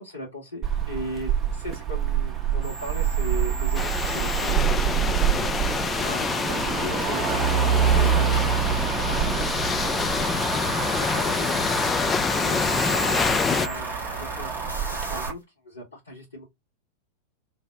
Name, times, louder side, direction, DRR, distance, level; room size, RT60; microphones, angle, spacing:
voice 1, 0.0-8.7 9.1-10.3 10.6-11.9 12.2-16.4, left 1 dB, 75° left, 1.1 m, -38 dB
Motor vehicle (road), 0.6-15.3, right 7 dB, 20° right, 0.7 m, -26 dB
sound 1, 2.6-4.5 7.0-15.3, right 2 dB, 90° right, 0.8 m, -38 dB
sound 2, 3.7-13.7, left 5 dB, 20° left, 0.3 m, -26 dB
2.6 x 2.0 x 3.3 m
figure-of-eight pair, 90°, 0 cm